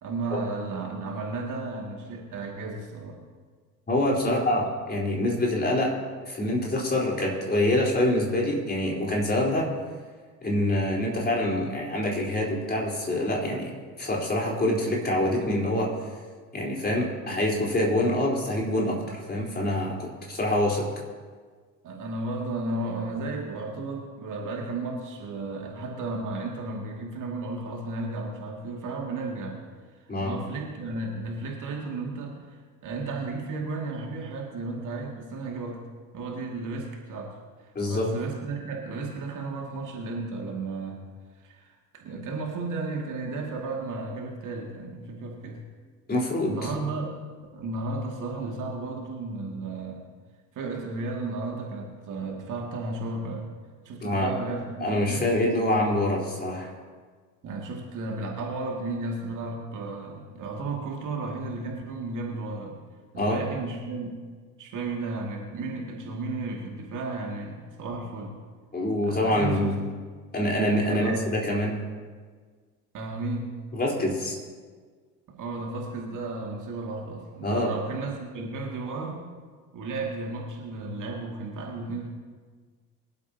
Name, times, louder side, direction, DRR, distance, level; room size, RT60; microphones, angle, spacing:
voice 1, 0.0-3.2 4.2-4.4 21.8-29.6 30.2-35.8 36.1-37.4 37.6-41.0 41.3-45.7 46.5-47.2 47.5-50.0 50.5-53.4 53.8-55.3 57.4-62.8 63.1-64.2 64.6-68.4 69.0-69.7 70.8-71.2 72.9-73.6 75.3-79.3 79.7-82.1, right 3 dB, 40° right, 0 dB, 2.4 m, -34 dB
voice 2, 3.9-5.9 6.3-9.7 10.4-13.7 14.0-15.9 16.5-20.8 30.1-30.3 37.7-38.1 46.1-46.7 54.0-54.3 54.8-56.7 63.2-63.4 68.7-69.7 70.3-71.8 73.7-74.3 77.4-77.7, left 1 dB, 20° left, -3 dB, 4.1 m, -25 dB
24.0 x 12.0 x 2.9 m, 1.6 s
figure-of-eight pair, 60°, 46 cm